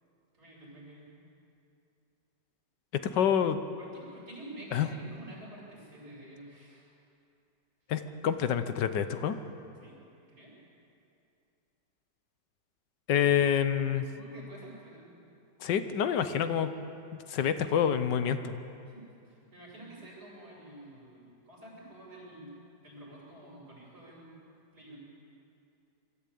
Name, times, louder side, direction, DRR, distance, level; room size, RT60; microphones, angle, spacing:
voice 1, 0.3-1.1 3.8-6.8 9.8-10.0 10.3-10.5 14.1-15.1 18.9-22.5 22.8-24.3 24.7-25.0, right 1 dB, 65° right, -4 dB, 7.5 m, -49 dB
voice 2, 3.1-3.6 4.7-4.9 7.9-9.4 13.1-14.1 15.6-16.7 17.3-18.6, left 8 dB, 85° left, 10 dB, 1.6 m, -27 dB
23.5 x 14.0 x 8.4 m, 2.6 s
omnidirectional pair, 1.8 m